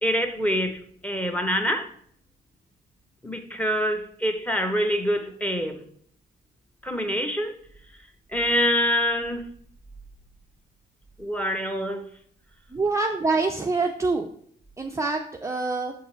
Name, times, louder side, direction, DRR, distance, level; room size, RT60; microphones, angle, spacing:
voice 1, 0.0-1.9 3.2-5.8 6.8-7.5 8.3-9.4 11.2-12.0, equal, 5° left, 0.9 m, -25 dB
voice 2, 12.7-14.3 14.8-15.9, right 3 dB, 15° right, 0.5 m, -25 dB
7.2 x 3.8 x 4.4 m
cardioid pair, 90°, 20 cm